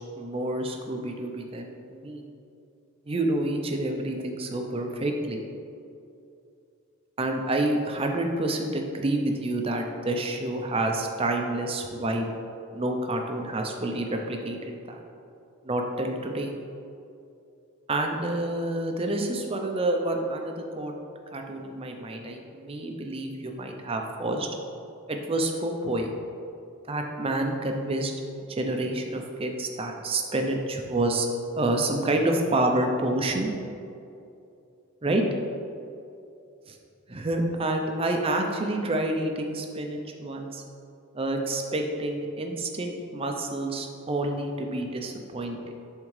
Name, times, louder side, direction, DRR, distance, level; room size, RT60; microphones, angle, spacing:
voice 1, 0.2-2.2 3.1-5.4 7.2-12.3 12.7-14.6 14.9-15.0 15.6-16.5 17.9-20.9 21.3-24.5 25.1-26.1 26.9-31.3 31.6-33.5 35.0-35.2 36.7-36.8 37.1-40.6 41.1-45.6, right 1 dB, 25° right, 3 dB, 0.5 m, -28 dB
10.5 x 3.7 x 3.2 m, 2.6 s
head